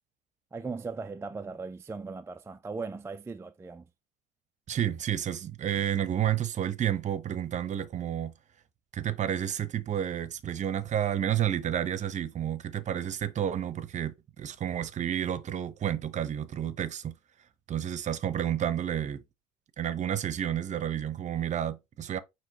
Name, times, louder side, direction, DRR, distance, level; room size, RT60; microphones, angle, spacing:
voice 1, 0.5-3.9, right 4 dB, 15° right, 0.3 m, -38 dB
voice 2, 4.7-8.3 8.9-17.1 17.7-19.2 19.8-22.2, right 10 dB, 40° right, 0.7 m, -30 dB
5.8 x 2.9 x 2.8 m
hypercardioid pair, 75°, 18 cm